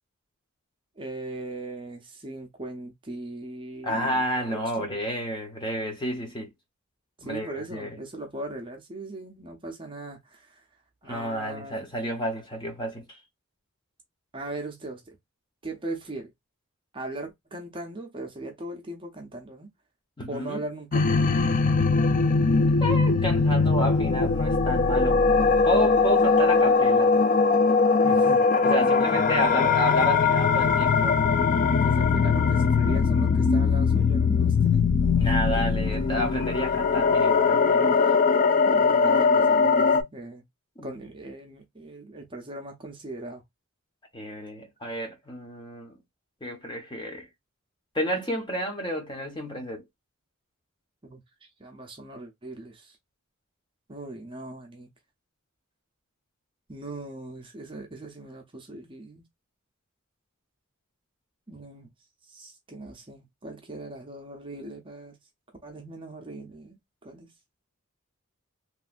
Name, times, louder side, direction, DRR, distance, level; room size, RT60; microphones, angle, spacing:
voice 1, 1.0-4.2 4.4-4.9 7.2-10.7 11.0-11.8 14.3-15.2 15.6-16.3 16.9-19.7 20.3-21.1 28.0-28.4 29.0-29.2 31.6-34.9 38.7-40.4 40.8-43.4 51.0-53.0 53.9-54.9 56.7-59.2 61.5-61.9 62.3-65.2 65.6-67.3, right 2 dB, 25° right, 0.6 m, -39 dB
voice 2, 3.8-6.5 7.2-8.0 11.0-13.2 20.2-20.6 22.8-25.3 25.6-27.1 28.6-31.2 35.2-38.0 39.9-40.1 40.8-40.9 44.1-46.0 46.4-47.3 47.9-49.8, equal, 20° left, 0.9 m, -30 dB
sound 1, 20.9-40.0, left 4 dB, 35° left, 0.3 m, -21 dB
3.1 x 2.6 x 2.4 m
head